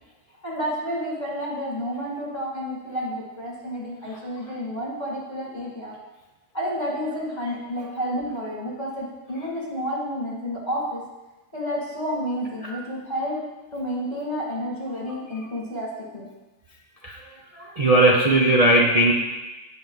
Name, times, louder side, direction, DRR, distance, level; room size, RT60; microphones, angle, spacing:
voice 1, 0.4-5.9 6.5-11.0 11.5-13.4 13.7-16.3, equal, 30° left, -4 dB, 2.6 m, -30 dB
voice 2, 17.0-19.1, right 1 dB, 30° right, -3 dB, 0.9 m, -19 dB
16.5 x 5.6 x 4.0 m, 1.1 s
omnidirectional pair, 1.4 m